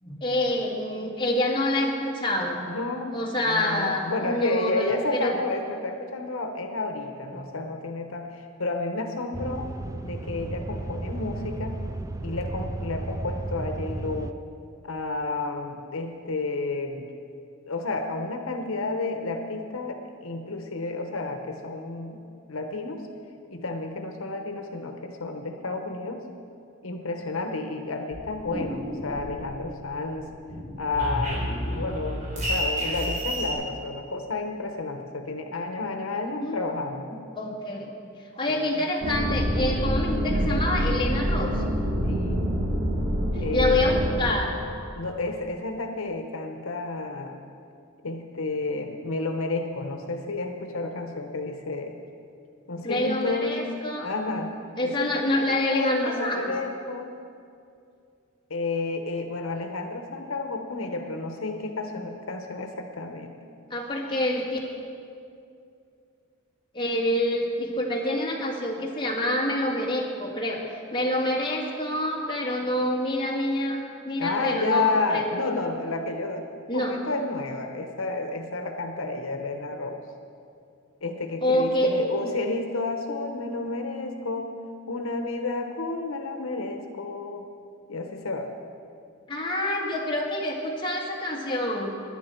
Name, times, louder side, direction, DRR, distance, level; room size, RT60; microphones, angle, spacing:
voice 1, 0.0-2.6 3.1-5.4 7.3-7.5 36.4-36.6 37.4-37.9 38.4-41.6 43.3-44.6 52.8-54.1 54.8-56.5 63.7-64.6 66.7-75.2 76.7-77.0 81.4-81.9 89.3-91.9, left 1 dB, 25° left, -2 dB, 1.8 m, -27 dB
voice 2, 2.6-3.2 3.4-9.7 10.0-11.8 12.2-14.3 14.8-17.0 17.7-22.2 22.5-23.0 23.5-26.2 26.8-30.3 30.8-37.1 38.5-38.9 42.1-42.5 43.4-43.8 45.0-47.4 48.0-51.9 52.7-53.6 54.0-54.5 54.8-55.0 55.7-57.1 58.5-63.3 74.2-80.0 81.0-84.5 84.9-87.5 87.9-88.5, left 3 dB, 75° left, 5 dB, 0.9 m, -31 dB
sound 1, 9.3-14.3, right 2 dB, 15° right, 0.3 m, -33 dB
sound 2, 28.1-29.8 30.1-33.5, equal, 40° right, 3.3 m, -31 dB
sound 3, 39.0-44.2, equal, 80° right, 3.4 m, -26 dB
19.0 x 10.5 x 4.5 m, 2.5 s
head